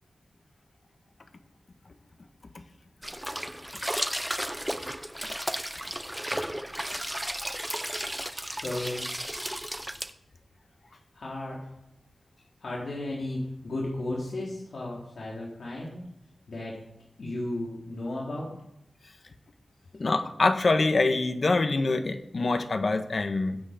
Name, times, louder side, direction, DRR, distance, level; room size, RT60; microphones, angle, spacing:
sound 1, 3.0-10.1, equal, 5° right, 0.9 m, -34 dB
voice 1, 8.5-9.0 11.1-11.7 12.6-16.0 16.5-16.8 17.2-18.5, left 1 dB, 65° left, -4 dB, 3.7 m, -34 dB
voice 2, 19.9-23.6, left 3 dB, 50° left, 7 dB, 1.5 m, -25 dB
22.0 x 8.7 x 5.2 m, 0.81 s
wide cardioid pair, 95°, 0 cm